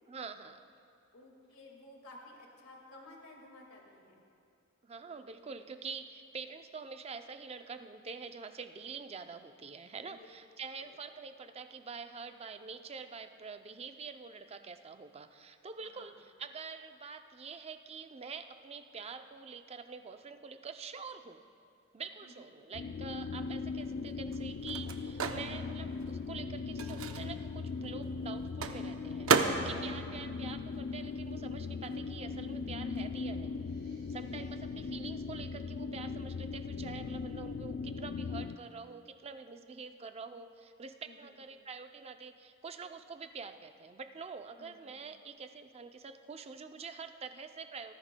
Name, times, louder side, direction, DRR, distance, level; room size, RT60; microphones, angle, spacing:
voice 1, 0.1-0.6 4.8-21.4 21.9-33.7 34.1-47.9, right 5 dB, 30° right, 8 dB, 0.5 m, -46 dB
voice 2, 1.1-4.2 10.1-10.3 10.8-11.0 15.8-16.1 22.2-22.5 30.0-30.4 34.2-34.7 41.1-41.4 44.6-44.8, left 1 dB, 85° left, 0 dB, 2.0 m, -54 dB
sound 1, 22.7-38.6, left 4 dB, 60° left, 0.4 m, -39 dB
Microwave oven, 23.3-31.5 31.7-33.6, right 4 dB, 80° right, 0.7 m, -36 dB
sound 2, 33.5-35.1, equal, 50° right, 3.1 m, -62 dB
19.0 x 13.5 x 2.2 m, 2.5 s
head